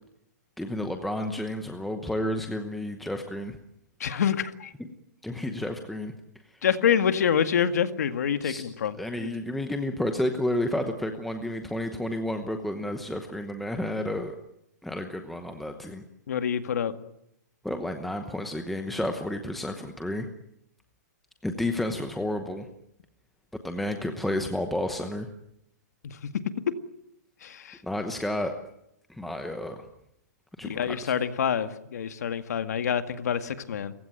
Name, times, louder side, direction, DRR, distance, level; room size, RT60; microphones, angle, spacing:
voice 1, 0.6-3.6 5.2-6.1 8.4-8.6 9.0-14.4 14.8-16.0 17.6-20.3 21.4-22.7 23.6-25.3 27.8-28.5 29.1-29.9 30.6-31.1, left 1 dB, ahead, 5 dB, 0.9 m, -31 dB
voice 2, 4.0-4.7 6.6-9.3 16.3-16.9 26.0-26.2 27.4-27.8 30.7-33.9, left 8 dB, 60° left, 10 dB, 1.9 m, -27 dB
30.0 x 16.0 x 9.0 m, 0.80 s
hypercardioid pair, 175°, 10 cm